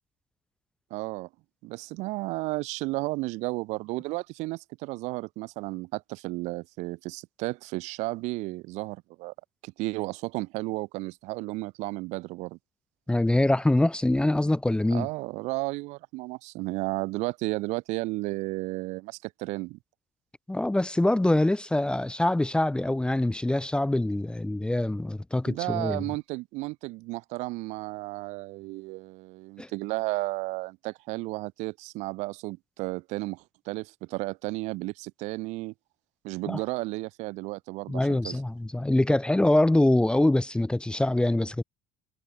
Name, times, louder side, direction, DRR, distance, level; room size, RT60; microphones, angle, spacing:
voice 1, 0.9-1.3 1.6-9.3 9.6-12.6 14.9-19.8 25.5-35.7 36.2-38.4, right 22 dB, 70° right, 3.4 m, -33 dB
voice 2, 13.1-15.1 20.5-26.0 29.6-29.7 36.5-36.6 37.9-41.6, left 1 dB, 5° left, 1.0 m, -24 dB
hypercardioid pair, 80°, 12 cm